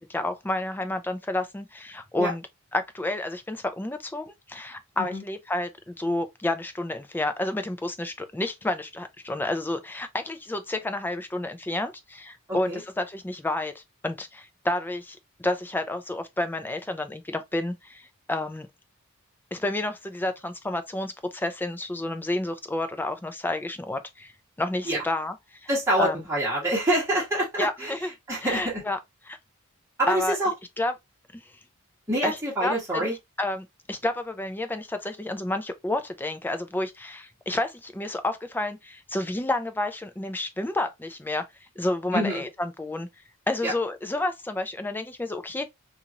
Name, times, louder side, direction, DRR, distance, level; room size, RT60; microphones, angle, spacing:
voice 1, 0.1-2.4 2.7-18.7 19.5-24.3 24.6-25.7 26.0-26.2 27.6-28.1 28.4-29.0 29.3-29.4 30.1-30.4 30.8-30.9 31.3-31.4 32.2-32.4 32.6-33.1 33.4-41.4 41.8-43.1 43.5-45.7, left 2 dB, 10° left, 0.3 m, -30 dB
voice 2, 12.5-12.8 24.9-25.0 25.7-27.9 28.3-28.8 30.0-30.5 32.1-33.1 42.1-42.4 43.6-43.7, right 1 dB, 10° right, 1.4 m, -26 dB
2.8 x 2.5 x 2.8 m
head